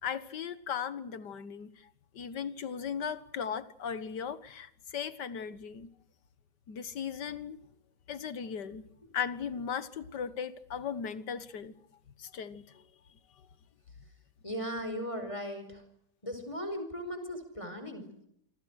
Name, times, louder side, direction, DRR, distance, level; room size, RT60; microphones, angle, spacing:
voice 1, 0.0-1.7 2.2-5.9 6.7-7.6 8.1-8.8 9.1-11.7 12.2-12.6, left 7 dB, 80° left, 15 dB, 2.0 m, -37 dB
voice 2, 14.4-15.8 16.2-18.3, equal, 20° left, 7 dB, 5.1 m, -38 dB
27.5 x 25.5 x 6.5 m, 0.74 s
omnidirectional pair, 1.8 m